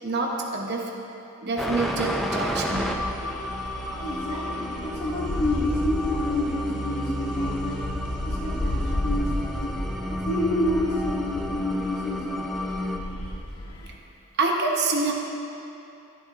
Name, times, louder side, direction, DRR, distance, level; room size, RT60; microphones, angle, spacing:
voice 1, 0.0-3.0 14.4-15.1, right 3 dB, 50° right, 0 dB, 1.0 m, -27 dB
sound 1, 1.6-13.0, left 1 dB, ahead, 0.5 m, -32 dB
sound 2, 2.8-14.0, left 1 dB, 85° left, 0.9 m, -34 dB
voice 2, 4.0-7.8 8.2-9.7 10.1-12.5 12.8-13.1, left 1 dB, 45° left, -6 dB, 2.2 m, -29 dB
sound 3, 5.2-11.7, right 1 dB, 20° right, 2.6 m, -37 dB
13.5 x 11.5 x 2.6 m, 2.8 s
head